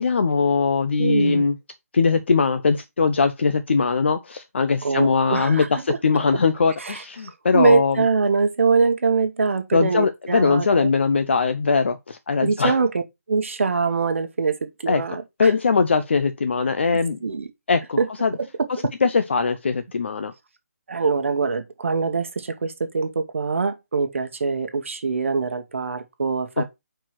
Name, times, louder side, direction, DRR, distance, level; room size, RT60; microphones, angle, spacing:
voice 1, 0.0-1.6 1.9-8.1 9.7-12.8 14.9-15.0 15.4-17.2 17.7-18.3 19.0-20.3 26.6-26.7, left 4 dB, 50° left, 0.6 m, -21 dB
voice 2, 1.0-1.4 4.8-5.7 6.8-7.0 7.5-10.9 12.4-13.0 13.3-15.5 17.2-17.5 18.0-18.1 20.9-26.6, right 4 dB, 55° right, 1.0 m, -23 dB
4.6 x 4.5 x 5.8 m
hypercardioid pair, 175°, 8 cm